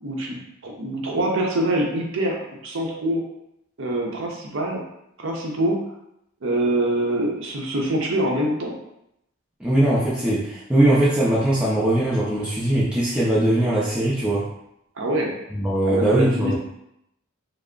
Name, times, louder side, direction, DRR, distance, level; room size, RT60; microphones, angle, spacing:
voice 1, 0.0-3.2 3.8-4.8 5.2-5.8 6.4-8.7 15.0-15.3 15.8-16.5, right 1 dB, 60° right, 0 dB, 0.6 m, -24 dB
voice 2, 9.6-14.4 15.5-16.5, right 1 dB, 5° right, -8 dB, 0.4 m, -20 dB
3.3 x 2.0 x 3.7 m, 0.81 s
head